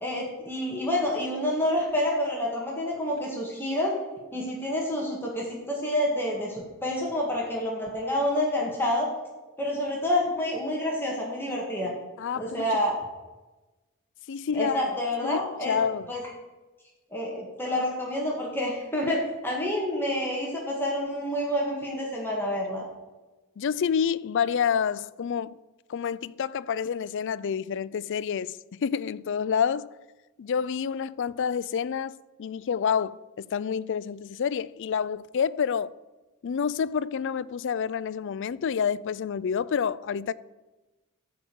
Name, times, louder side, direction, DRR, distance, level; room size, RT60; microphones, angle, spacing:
voice 1, 0.0-3.9 4.3-9.1 9.6-11.9 12.3-13.0 14.5-15.8 16.1-16.2 17.1-22.9, left 1 dB, 10° left, 1.8 m, -28 dB
voice 2, 12.2-12.8 14.3-14.8 15.2-16.1 23.6-25.6 25.9-29.9 30.4-35.9 36.4-40.3, left 7 dB, 55° left, 0.4 m, -28 dB
14.0 x 5.1 x 6.2 m
head